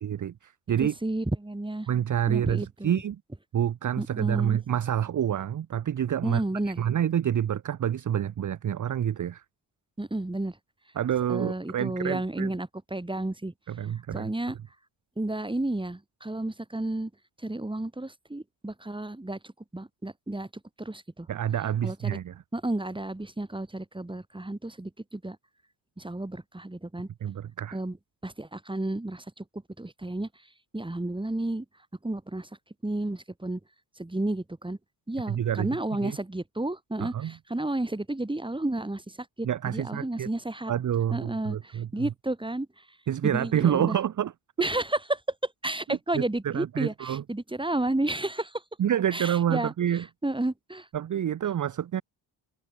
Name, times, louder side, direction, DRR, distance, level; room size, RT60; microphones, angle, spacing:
voice 1, 0.0-0.9 1.9-3.2 3.5-9.4 11.0-12.5 13.7-14.3 21.3-22.4 27.2-27.8 35.3-35.8 36.0-36.2 37.0-37.3 39.4-40.3 40.7-42.1 43.1-44.3 45.9-47.2 48.8-50.1 50.9-52.0, right 10 dB, 40° right, 0.8 m, -28 dB
voice 2, 0.8-1.9 2.3-3.0 4.0-4.6 6.2-6.8 10.0-10.6 11.3-13.5 14.1-14.6 15.2-17.1 17.4-20.5 20.8-21.3 21.8-22.2 22.5-25.4 26.0-27.1 27.7-28.0 28.2-29.4 29.8-30.3 30.7-31.6 32.0-32.5 32.8-33.6 34.0-34.8 35.1-40.7 41.1-42.7 43.2-44.0 44.6-48.6 49.1-49.7 50.2-50.9, right 2 dB, 10° right, 2.9 m, -32 dB
supercardioid pair, 65°, 48 cm